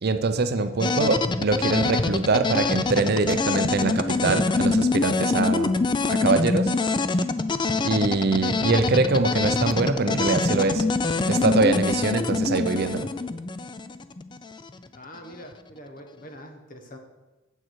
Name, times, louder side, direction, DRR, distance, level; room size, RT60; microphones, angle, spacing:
voice 1, 0.0-6.7 7.8-10.8 11.3-13.1, right 3 dB, 50° right, 10 dB, 0.5 m, -24 dB
sound 1, 0.8-14.7, left 3 dB, 20° left, 0.3 m, -25 dB
voice 2, 14.9-17.0, equal, 40° left, 5 dB, 1.1 m, -44 dB
9.0 x 7.5 x 4.6 m, 1.2 s
head